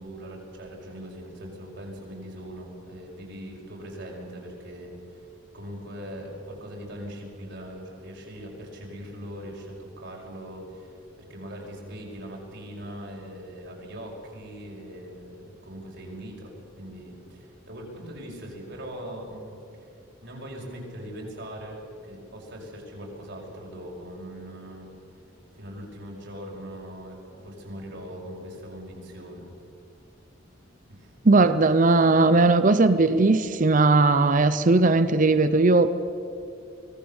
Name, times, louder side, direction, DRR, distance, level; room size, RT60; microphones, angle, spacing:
voice 1, 0.0-5.3 5.5-11.0 11.3-19.9 20.2-24.9 25.6-29.5 30.9-31.1, equal, 60° right, -1 dB, 5.8 m, -40 dB
voice 2, 31.2-35.9, right 3 dB, 40° right, 12 dB, 0.7 m, -18 dB
25.0 x 19.0 x 7.2 m, 2.7 s
head